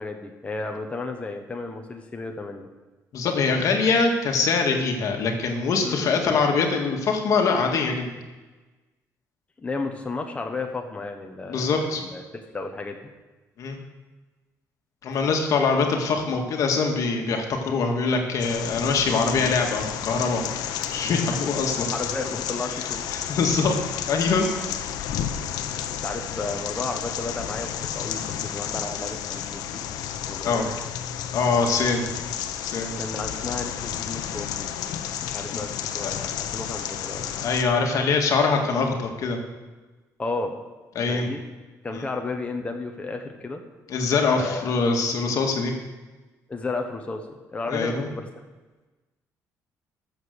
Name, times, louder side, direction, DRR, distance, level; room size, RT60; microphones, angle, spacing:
voice 1, 0.0-2.7 5.8-6.1 9.6-12.2 12.5-13.0 21.3-21.4 21.9-23.0 25.6-29.8 30.2-30.7 33.0-34.7 35.2-37.4 40.2-40.6 41.1-41.4 41.8-43.6 44.4-44.7 46.5-48.3, left 3 dB, 20° left, 3 dB, 1.2 m, -33 dB
voice 2, 3.1-8.1 11.5-12.0 13.6-13.8 15.0-20.4 20.9-21.9 23.1-23.8 24.1-24.5 30.4-30.7 31.3-32.0 32.6-32.9 36.0-36.1 37.4-39.4 41.0-41.3 41.9-42.0 43.9-45.7 47.7-48.1, left 4 dB, 60° left, 3 dB, 1.9 m, -23 dB
sound 1, 18.4-37.6, left 9 dB, 85° left, 0.9 m, -31 dB
13.0 x 7.3 x 6.6 m, 1.2 s
cardioid pair, 115°, 6 cm